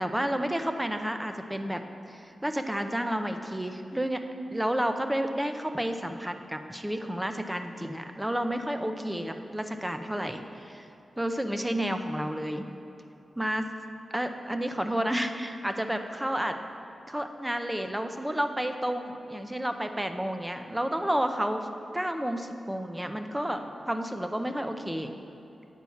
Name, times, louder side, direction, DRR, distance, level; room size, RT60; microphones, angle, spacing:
voice 1, 0.0-1.8 2.1-4.2 4.5-10.9 11.2-12.7 13.4-13.7 14.1-16.5 17.1-21.7 21.9-25.1, equal, 10° right, 7 dB, 0.6 m, -31 dB
9.5 x 4.5 x 7.1 m, 2.9 s
wide cardioid pair, 85°, 0 cm